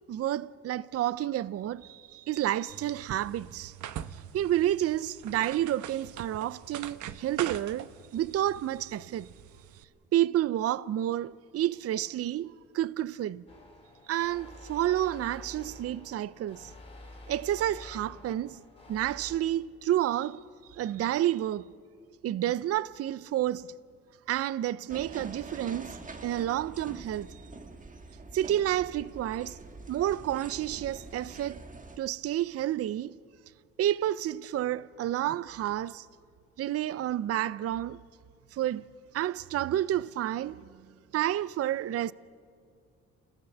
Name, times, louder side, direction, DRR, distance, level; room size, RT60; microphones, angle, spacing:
voice 1, 0.0-3.7 4.3-9.3 10.1-13.4 14.1-16.7 17.3-18.6 18.9-20.4 20.7-21.7 22.2-23.7 24.3-26.0 26.2-27.4 28.3-29.6 29.9-31.6 32.0-33.2 33.8-36.1 36.6-38.0 38.5-38.9 39.1-40.7 41.1-42.1, right 12 dB, 55° right, 0.5 m, -30 dB
sound 1, 2.7-9.8, right 10 dB, 70° right, 0.9 m, -43 dB
sound 2, 13.5-19.4, left 2 dB, 20° left, 5.0 m, -49 dB
sound 3, 24.9-32.0, right 3 dB, 25° right, 1.6 m, -45 dB
28.5 x 17.0 x 6.8 m
cardioid pair, 90°, 30 cm